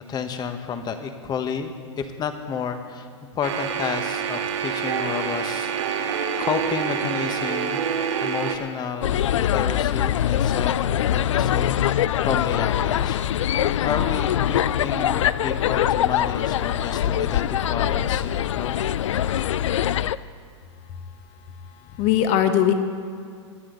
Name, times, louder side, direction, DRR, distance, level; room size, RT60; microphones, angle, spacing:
voice 1, 0.0-3.1 3.3-6.1 6.4-7.9 8.2-13.2 13.8-18.7, left 6 dB, 25° left, 8 dB, 1.3 m, -31 dB
sound 1, 3.4-8.6, right 7 dB, 65° right, 2.0 m, -27 dB
sound 2, 9.0-20.2, left 10 dB, 75° left, 0.4 m, -23 dB
voice 2, 21.6-22.7, left 10 dB, 40° left, 8 dB, 1.5 m, -21 dB
23.5 x 9.8 x 4.0 m, 2.3 s
hypercardioid pair, 115°, 16 cm